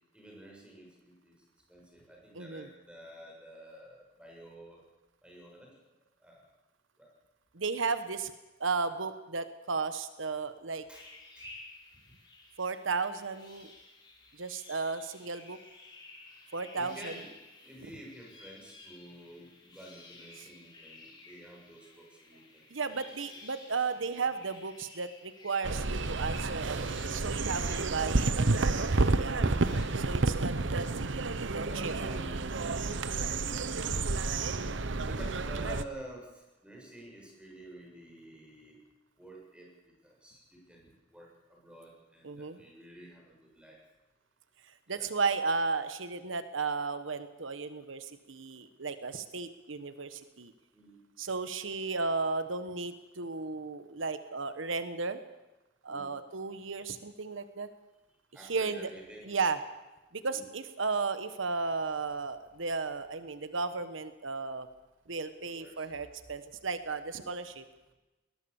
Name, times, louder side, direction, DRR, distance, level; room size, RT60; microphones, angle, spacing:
voice 1, 0.1-1.4 1.7-4.8 5.2-5.8 6.2-6.4 7.0-7.1 10.9-11.1 11.4-11.5 16.8-17.3 17.6-23.0 23.3-23.4 24.2-24.3 31.6-32.4 35.1-38.8 39.2-39.7 40.0-43.8 44.9-45.1 48.5-48.6 50.7-51.0 55.9-56.1 58.3-59.3 60.3-60.4 65.4-65.9 67.1-67.3, right 1 dB, 5° right, -2 dB, 7.4 m, -50 dB
voice 2, 2.3-2.7 7.5-8.3 8.6-10.8 12.6-13.7 14.4-15.6 16.5-17.1 20.4-20.5 22.7-29.4 29.9-30.9 31.4-31.9 32.5-33.0 42.2-42.6 44.9-50.5 51.2-55.2 55.8-57.7 58.5-58.9 59.2-59.6 60.1-64.7 65.1-67.6, right 4 dB, 85° right, 11 dB, 1.2 m, -34 dB
sound 1, 10.9-29.8, left 2 dB, 25° left, 6.5 m, -53 dB
sound 2, 25.6-35.8, right 3 dB, 70° right, 1.0 m, -30 dB
21.0 x 20.5 x 7.1 m, 1.1 s
head